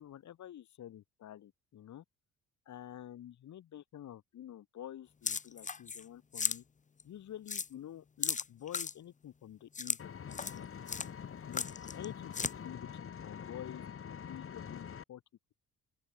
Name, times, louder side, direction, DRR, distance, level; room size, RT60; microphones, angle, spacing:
voice 1, 0.0-2.0 2.7-6.6 7.0-10.7 11.5-11.7 11.9-15.2, left 11 dB, 60° left, 5.8 m, -49 dB
sound 1, 5.2-6.0 6.3-6.6 7.0-7.1 7.5-7.7 8.2-8.9 9.7-10.0 10.3-10.6 10.9-11.1 11.5-12.0 12.3-12.5, left 5 dB, 25° left, 1.1 m, -35 dB
Engine, 10.0-15.0, left 7 dB, 45° left, 5.9 m, -45 dB
open air
cardioid pair, 125°, 31 cm